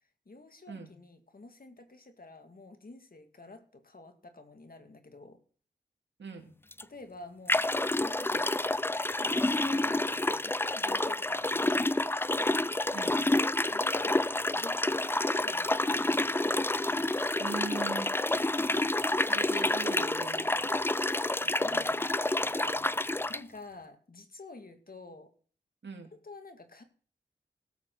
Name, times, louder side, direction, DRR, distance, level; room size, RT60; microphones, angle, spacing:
voice 1, 0.3-5.4 6.8-8.6 9.2-11.9 13.7-14.2 14.5-16.4 21.2-21.9 23.3-25.3 26.1-26.8, left 2 dB, 55° left, 7 dB, 2.2 m, -50 dB
voice 2, 6.2-6.5 12.9-13.2 17.4-18.1 19.2-20.7 21.4-22.1 22.4-23.0 25.8-26.1, right 4 dB, 85° right, 4 dB, 2.4 m, -42 dB
sound 1, 6.7-6.8 7.5-23.4, left 2 dB, 10° left, 0.4 m, -29 dB
sound 2, 15.6-20.8, left 4 dB, 80° left, 2.9 m, -60 dB
18.0 x 7.9 x 3.9 m, 0.44 s
wide cardioid pair, 60°, 18 cm